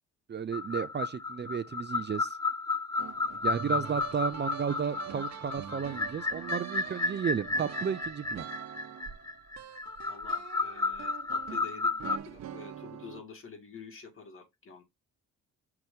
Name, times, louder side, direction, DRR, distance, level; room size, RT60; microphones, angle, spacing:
voice 1, 0.3-2.4 3.4-8.4, right 7 dB, 35° right, 0.7 m, -33 dB
sound 1, 0.5-12.2, left 3 dB, 15° left, 0.4 m, -33 dB
sound 2, 3.0-13.2, right 9 dB, 60° right, 1.1 m, -44 dB
voice 2, 10.0-14.8, left 5 dB, 45° left, 2.2 m, -48 dB
6.0 x 3.1 x 5.5 m
cardioid pair, 90°, 30 cm